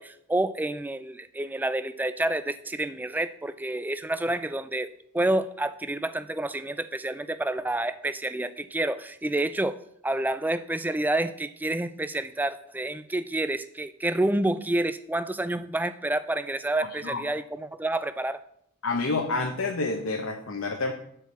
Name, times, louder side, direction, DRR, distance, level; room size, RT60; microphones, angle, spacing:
voice 1, 0.0-9.8 10.0-18.4, right 1 dB, 10° right, 13 dB, 0.3 m, -29 dB
voice 2, 18.8-20.9, left 3 dB, 60° left, 2 dB, 0.9 m, -28 dB
7.8 x 4.6 x 7.1 m, 0.68 s
head